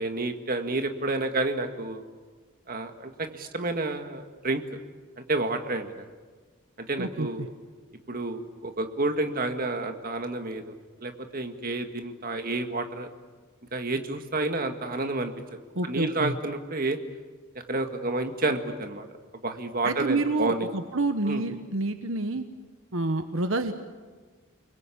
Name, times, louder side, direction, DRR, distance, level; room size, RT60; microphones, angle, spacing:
voice 1, 0.0-2.0 2.7-4.6 5.2-5.9 6.9-7.5 8.1-10.7 11.0-13.1 13.7-15.3 15.8-17.0 17.7-19.0 19.4-20.7 21.3-21.4, right 2 dB, 45° right, 6 dB, 1.9 m, -30 dB
voice 2, 7.0-7.5 15.7-16.3 19.8-22.4 22.9-23.7, right 2 dB, 70° right, 8 dB, 1.2 m, -28 dB
30.0 x 21.0 x 8.6 m, 1.4 s
head